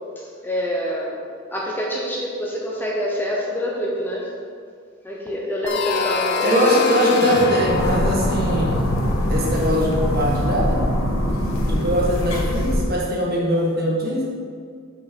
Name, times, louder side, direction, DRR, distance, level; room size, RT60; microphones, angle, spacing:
voice 1, 0.2-1.2 1.5-4.3 5.0-6.7, equal, 10° left, -4 dB, 0.9 m, -26 dB
sound 1, 5.7-10.3, left 4 dB, 55° left, 0.6 m, -26 dB
voice 2, 6.4-8.8 9.3-10.8 11.7-14.3, equal, 50° right, -4 dB, 1.5 m, -21 dB
sound 2, 7.6-12.8, equal, 85° left, 1.1 m, -22 dB
6.1 x 5.3 x 5.2 m, 2.2 s
head